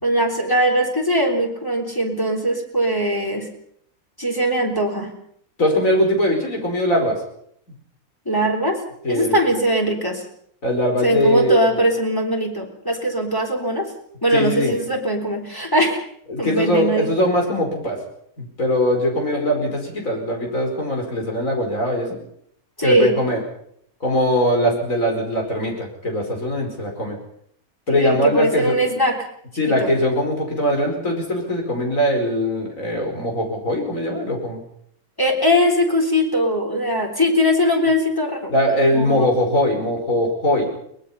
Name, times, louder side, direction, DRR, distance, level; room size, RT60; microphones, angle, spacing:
voice 1, 0.0-3.5 4.2-5.1 8.3-8.8 9.1-10.3 11.0-13.9 14.2-16.0 16.4-17.1 22.8-23.2 27.9-29.2 29.7-29.9 35.2-38.5 38.9-39.3, equal, 15° left, 1 dB, 3.5 m, -20 dB
voice 2, 5.6-7.2 9.0-9.4 10.6-11.6 14.3-14.7 16.3-18.0 18.4-22.2 22.8-23.4 24.0-27.2 27.9-28.8 29.6-34.6 38.5-40.7, equal, 65° left, 1 dB, 5.5 m, -21 dB
23.0 x 20.0 x 5.6 m, 0.68 s
omnidirectional pair, 1.5 m